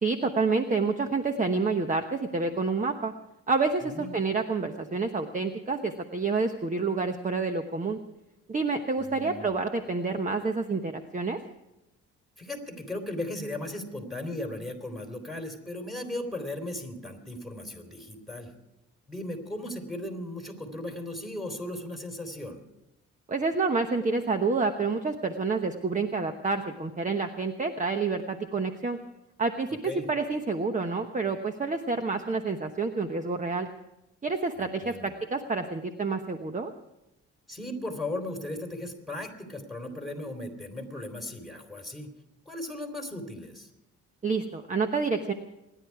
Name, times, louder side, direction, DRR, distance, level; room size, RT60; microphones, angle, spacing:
voice 1, 0.0-3.1 3.5-8.0 8.5-11.4 23.3-29.0 29.4-33.7 34.2-36.7 44.2-45.3, right 4 dB, 25° right, 7 dB, 1.1 m, -28 dB
voice 2, 3.8-4.1 9.0-9.5 12.4-18.5 19.1-22.6 29.7-30.1 34.6-35.1 37.5-42.1 42.5-43.7, left 1 dB, ahead, 3 dB, 3.8 m, -37 dB
27.0 x 11.0 x 4.8 m, 0.93 s
cardioid pair, 90°, 30 cm